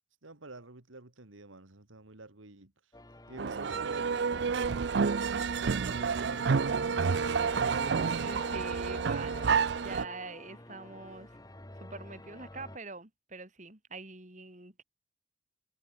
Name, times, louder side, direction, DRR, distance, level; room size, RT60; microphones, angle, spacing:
voice 1, 0.2-2.9 3.3-4.8, right 2 dB, 90° right, 2.1 m, -50 dB
sound 1, 2.9-12.8, left 2 dB, 20° left, 1.8 m, -49 dB
sound 2, 3.4-10.1, right 5 dB, 60° right, 0.5 m, -29 dB
voice 2, 8.1-11.4 11.8-14.8, right 3 dB, 40° right, 3.0 m, -45 dB
head